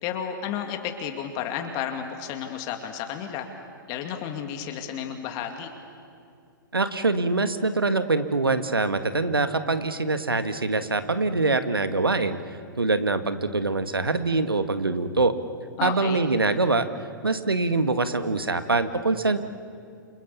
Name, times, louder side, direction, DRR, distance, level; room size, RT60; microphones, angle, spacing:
voice 1, 0.0-3.5 3.9-5.7 15.8-16.2, left 8 dB, 35° left, 5 dB, 2.5 m, -32 dB
voice 2, 6.7-12.4 12.8-15.3 15.8-16.9 17.2-19.4, right 3 dB, 85° right, 10 dB, 1.7 m, -24 dB
28.5 x 28.5 x 7.0 m, 2.4 s
figure-of-eight pair, 115°, 12 cm